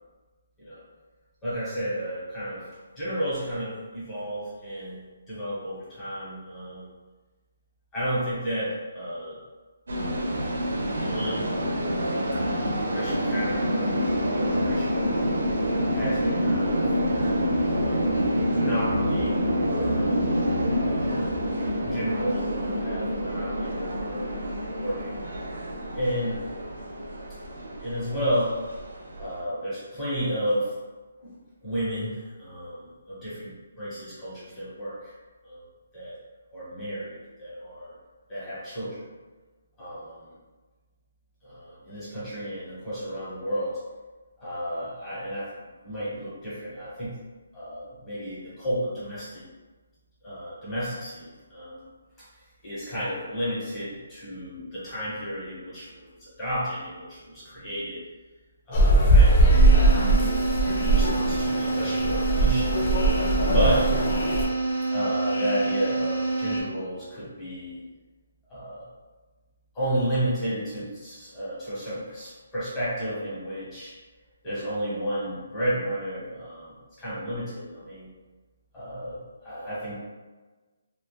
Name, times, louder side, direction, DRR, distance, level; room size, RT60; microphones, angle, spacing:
voice 1, 1.4-2.6 3.0-5.0 5.3-6.9 7.9-9.3 11.0-11.6 12.4-15.3 15.9-16.8 17.7-18.1 18.5-20.1 20.7-21.2 21.8-24.3 24.8-25.4 25.9-26.3 27.8-28.6 29.2-30.7 31.2-31.3 31.6-35.1 35.4-35.6 35.9-36.1 36.5-37.9 38.3-39.1 39.8-40.2 41.4-43.8 44.4-45.5 45.8-47.2 47.5-49.4 50.2-51.9 52.6-58.0 58.7-59.9 60.9-62.8 63.5-63.9 64.9-67.8 68.5-68.9 69.7-73.9 74.4-78.1 78.7-80.0, equal, 10° left, -11 dB, 0.9 m, -32 dB
sound 1, 9.9-29.4, equal, 90° right, 0.5 m, -27 dB
sound 2, 58.7-64.5, right 2 dB, 25° left, 0.3 m, -20 dB
sound 3, 59.5-66.6, right 3 dB, 75° left, 0.7 m, -27 dB
3.1 x 2.1 x 2.2 m, 1.3 s
hypercardioid pair, 175°, 0 cm